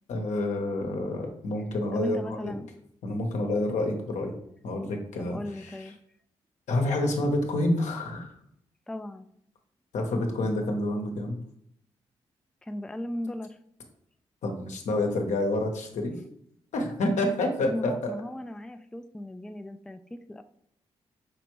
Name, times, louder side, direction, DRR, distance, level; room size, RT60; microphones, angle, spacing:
voice 1, 0.1-2.5 3.0-4.3 4.6-5.8 6.7-8.3 9.9-11.4 14.4-16.2 16.7-18.1, left 1 dB, 70° left, 3 dB, 0.9 m, -28 dB
voice 2, 1.9-2.7 5.2-6.0 8.9-9.3 12.6-13.6 17.7-20.4, left 1 dB, 5° left, 9 dB, 0.4 m, -36 dB
5.1 x 3.3 x 3.0 m, 0.71 s
supercardioid pair, 45°, 12 cm